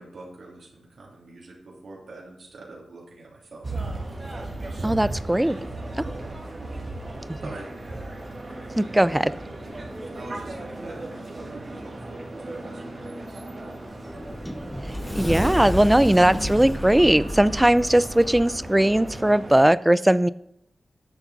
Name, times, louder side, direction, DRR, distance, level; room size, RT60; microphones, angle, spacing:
voice 1, 0.0-3.8 4.4-5.0 7.4-7.7 10.1-13.7, right 2 dB, 70° right, -3 dB, 3.0 m, -44 dB
sound 1, 3.6-19.7, right 2 dB, 35° right, 2.6 m, -36 dB
voice 2, 4.8-5.6 6.0-6.1 8.8-9.3 14.8-20.3, right 1 dB, 10° right, 17 dB, 0.4 m, -19 dB
Sliding door, 13.8-18.6, left 1 dB, 10° left, 1.1 m, -31 dB
10.0 x 7.0 x 4.1 m, 0.77 s
wide cardioid pair, 90°, 0 cm